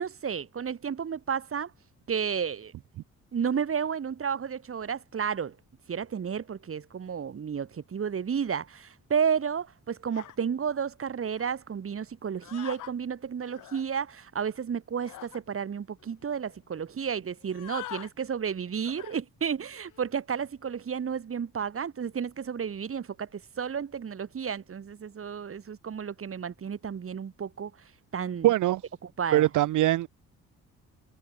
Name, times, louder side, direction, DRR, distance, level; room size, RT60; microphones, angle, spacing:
voice 1, 0.0-1.7 2.1-2.7 3.3-5.6 5.9-27.7 28.1-28.5 29.0-29.5, right 7 dB, 45° right, 4.9 m, -32 dB
sound 1, 10.1-10.4 11.4-11.5 12.4-12.9 13.4-13.9 15.0-15.4 16.0-16.1 16.3-16.6 17.4-18.1 18.8-19.2 19.7-20.0, left 15 dB, 90° left, 5.7 m, -44 dB
voice 2, 28.4-28.8 29.3-30.1, right 15 dB, 80° right, 1.6 m, -22 dB
cardioid pair, 90°, 30 cm